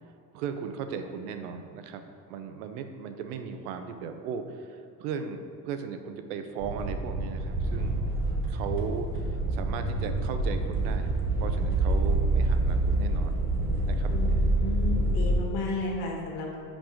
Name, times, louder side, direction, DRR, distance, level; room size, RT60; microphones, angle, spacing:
voice 1, 0.3-8.2 8.5-11.1 11.4-13.3 13.9-14.4, right 6 dB, 80° right, 7 dB, 0.7 m, -37 dB
sound 1, 6.6-15.4, right 2 dB, 25° right, 1.4 m, -27 dB
voice 2, 14.1-16.6, left 3 dB, 75° left, -1 dB, 1.6 m, -33 dB
5.4 x 5.1 x 5.0 m, 2.6 s
supercardioid pair, 90°, 45 cm